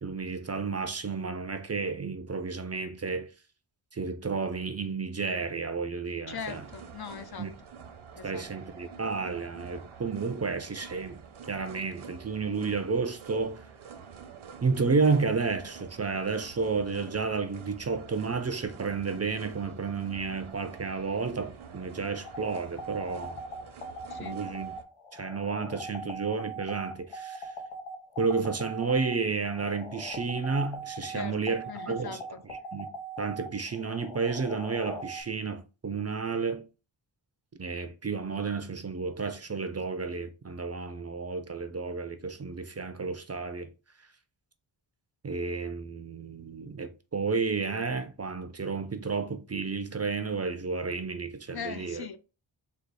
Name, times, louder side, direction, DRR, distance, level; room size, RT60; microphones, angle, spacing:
voice 1, 0.0-3.3 3.9-6.6 7.4-7.5 8.2-11.2 11.5-13.7 14.6-23.4 24.2-24.7 25.1-27.5 28.2-32.2 32.7-32.9 33.2-36.6 37.6-43.7 45.2-52.1, right 4 dB, 35° right, 0.5 m, -31 dB
voice 2, 6.3-7.5 8.2-8.5 24.1-24.4 31.1-32.4 51.5-52.2, left 7 dB, 50° left, 0.5 m, -40 dB
sound 1, 6.3-24.8, right 6 dB, 75° right, 0.8 m, -48 dB
sound 2, 22.2-35.2, right 2 dB, 85° left, 1.1 m, -40 dB
4.0 x 2.4 x 4.6 m
wide cardioid pair, 85°, 49 cm